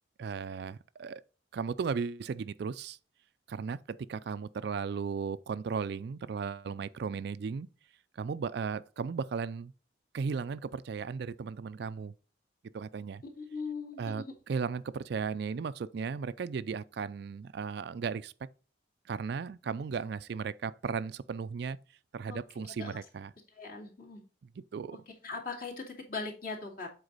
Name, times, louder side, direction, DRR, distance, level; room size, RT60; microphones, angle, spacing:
voice 1, 0.2-1.2 1.5-3.0 3.5-7.7 8.1-9.7 10.1-12.1 12.7-13.2 14.0-18.3 19.1-21.8 22.1-23.3 24.6-25.0, right 5 dB, 55° right, 0.3 m, -36 dB
voice 2, 13.3-14.3 22.3-22.4 22.8-22.9 23.6-24.2 25.2-26.9, left 4 dB, 45° left, 2.4 m, -39 dB
8.0 x 4.4 x 4.0 m
head